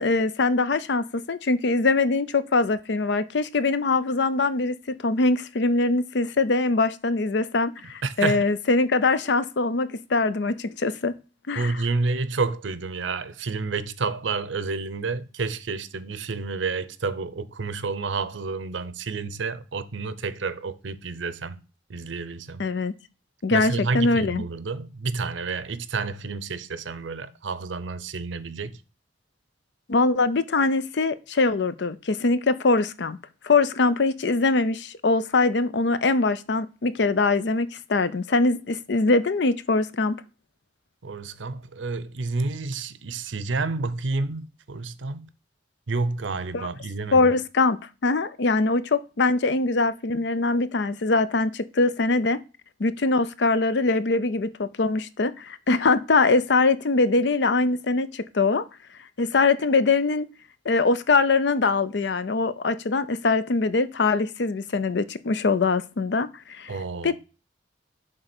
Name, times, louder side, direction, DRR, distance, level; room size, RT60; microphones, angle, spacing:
voice 1, 0.0-11.1 11.5-11.7 22.6-22.9 23.4-24.4 29.9-33.2 33.4-40.2 46.5-46.7 47.1-52.4 52.8-58.6 59.2-60.3 60.7-66.7 67.0-67.1, left 3 dB, 70° left, 0.6 m, -23 dB
voice 2, 8.0-8.5 11.6-21.6 21.9-22.6 23.5-28.8 41.0-45.3 45.9-47.3 66.7-67.1, right 4 dB, 85° right, 0.7 m, -30 dB
6.6 x 3.8 x 6.0 m
head